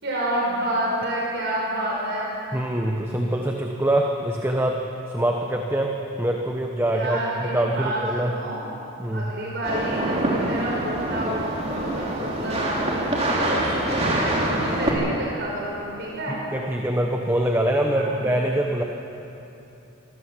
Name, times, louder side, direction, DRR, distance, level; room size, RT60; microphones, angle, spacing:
voice 1, 0.0-2.3 6.8-8.6 9.1-16.4 17.9-18.2, right 1 dB, 55° right, -4 dB, 5.1 m, -29 dB
voice 2, 2.5-4.8 5.1-8.3 9.0-9.3 16.5-18.8, right 1 dB, 10° right, 2 dB, 1.1 m, -24 dB
sound 1, 9.6-14.9, right 1 dB, 30° right, 3.3 m, -25 dB
25.0 x 17.5 x 7.5 m, 2.9 s
head